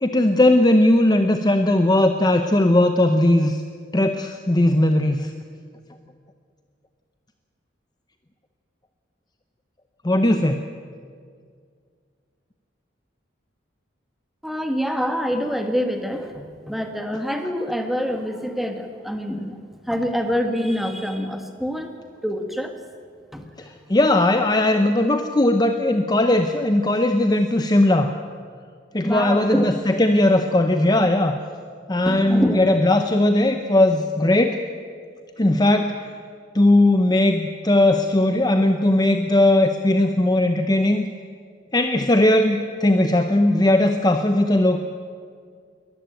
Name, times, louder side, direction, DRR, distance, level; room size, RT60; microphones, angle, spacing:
voice 1, 0.0-3.6 3.9-5.3 10.0-10.6 23.6-28.1 28.9-31.4 31.9-34.6 35.4-36.0 36.5-41.0 41.7-44.8, left 1 dB, 20° left, 7 dB, 0.7 m, -18 dB
voice 2, 14.4-19.6 19.9-21.9 22.2-22.7 23.3-23.5 29.0-29.7 32.1-32.6, equal, ahead, 5 dB, 1.5 m, -26 dB
22.0 x 13.5 x 9.0 m, 2.1 s
head